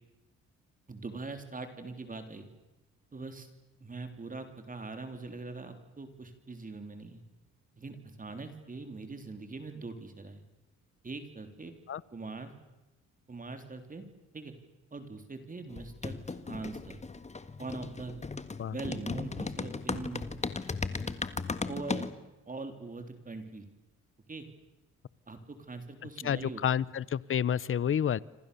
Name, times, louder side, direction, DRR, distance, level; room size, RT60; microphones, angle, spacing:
voice 1, 0.9-2.5 3.1-3.5 3.8-7.2 7.8-10.4 11.0-11.7 12.1-12.5 13.3-14.1 14.3-14.5 14.9-16.1 16.5-17.0 17.6-18.2 18.6-20.3 21.7-22.1 22.5-23.7 24.3-24.5 25.3-26.9, right 3 dB, 25° right, 7 dB, 3.7 m, -42 dB
sound 1, 15.7-22.1, left 4 dB, 20° left, 1.7 m, -36 dB
voice 2, 26.2-28.2, left 9 dB, 45° left, 21 dB, 0.9 m, -29 dB
28.5 x 26.0 x 7.0 m, 1.0 s
cardioid pair, 90°, 30 cm